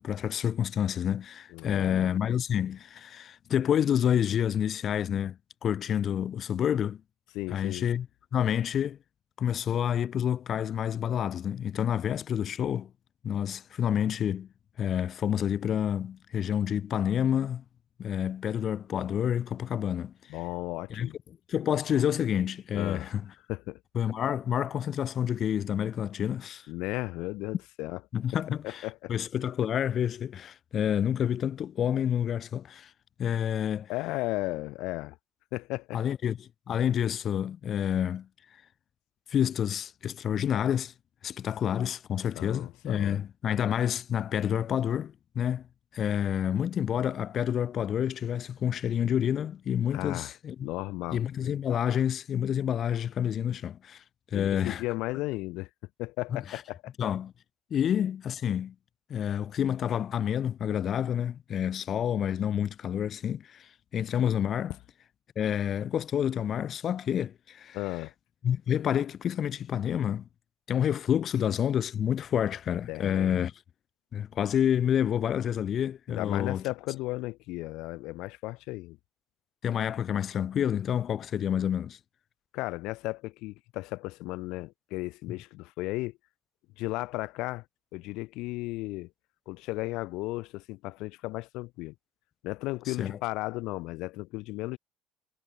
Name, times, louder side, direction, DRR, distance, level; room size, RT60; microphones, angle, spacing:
voice 1, 0.0-7.0 7.5-8.1 8.3-9.0 9.4-12.9 13.2-14.5 14.8-17.6 18.0-20.1 20.9-21.1 21.5-23.3 23.9-26.7 28.1-32.9 33.2-33.9 35.9-38.3 39.3-40.9 41.2-45.7 45.9-50.7 51.1-54.0 54.3-54.8 56.3-56.6 57.0-57.3 57.7-58.7 59.1-64.8 65.4-67.8 68.4-70.3 70.7-73.5 74.1-76.6 79.6-82.0 85.3-85.4 92.9-93.2, left 9 dB, 30° left, 0.4 m, -28 dB
voice 2, 1.5-2.1 7.3-7.9 20.3-21.1 22.7-23.1 23.5-23.8 26.7-28.0 28.5-29.1 33.9-35.2 35.5-36.0 42.3-43.2 49.9-50.3 50.6-51.2 54.3-55.7 56.0-56.9 67.7-68.1 72.9-73.3 76.1-79.0 82.5-86.2 86.8-87.6 87.9-89.1 89.5-91.9 92.4-94.8, left 21 dB, 60° left, 1.6 m, -35 dB
cardioid pair, 175°, 0 cm